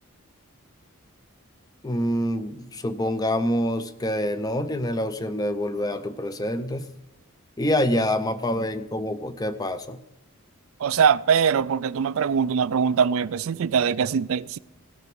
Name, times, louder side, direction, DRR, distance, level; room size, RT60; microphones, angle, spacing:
voice 1, 1.8-6.9 7.6-10.0, left 1 dB, 15° left, 0.5 m, -26 dB
voice 2, 10.8-14.6, right 7 dB, 65° right, 0.4 m, -22 dB
16.5 x 6.0 x 6.0 m
head